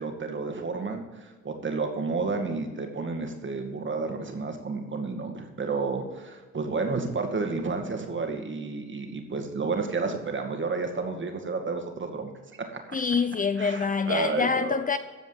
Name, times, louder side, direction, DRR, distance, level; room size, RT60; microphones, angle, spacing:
voice 1, 0.0-12.3 12.7-13.0 13.6-14.8, right 4 dB, 40° right, 2.2 m, -31 dB
voice 2, 12.9-15.0, left 5 dB, 25° left, 0.5 m, -26 dB
15.0 x 5.2 x 7.5 m
cardioid pair, 90°, 30 cm